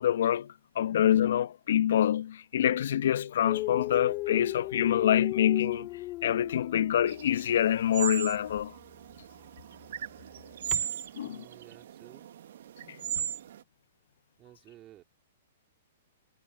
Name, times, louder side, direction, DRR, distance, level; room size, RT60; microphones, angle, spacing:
voice 1, 0.0-5.9 6.2-8.8 11.1-11.5 12.9-13.2, left 10 dB, 65° left, 1.0 m, -26 dB
Dog, 3.5-7.4 8.5-8.7 10.7-10.8, left 19 dB, 35° left, 0.5 m, -36 dB
sound 1, 7.1-13.6, right 10 dB, 65° right, 1.2 m, -37 dB
voice 2, 11.2-12.3 14.4-15.0, right 14 dB, 30° right, 3.6 m, -54 dB
hypercardioid pair, 120°, 0 cm